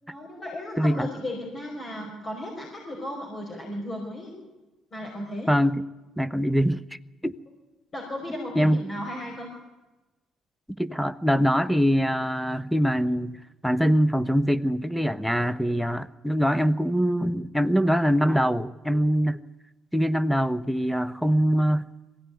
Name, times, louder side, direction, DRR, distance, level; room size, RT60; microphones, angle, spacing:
voice 1, 0.0-4.3 4.9-5.5 7.9-9.5, left 1 dB, 40° left, 0 dB, 5.3 m, -35 dB
voice 2, 0.8-1.1 5.5-5.8 6.2-6.8 7.2-7.4 8.5-8.8 10.8-19.4 19.9-21.9, equal, ahead, 14 dB, 1.1 m, -23 dB
22.0 x 16.5 x 9.4 m, 1.1 s
hypercardioid pair, 50°, 0 cm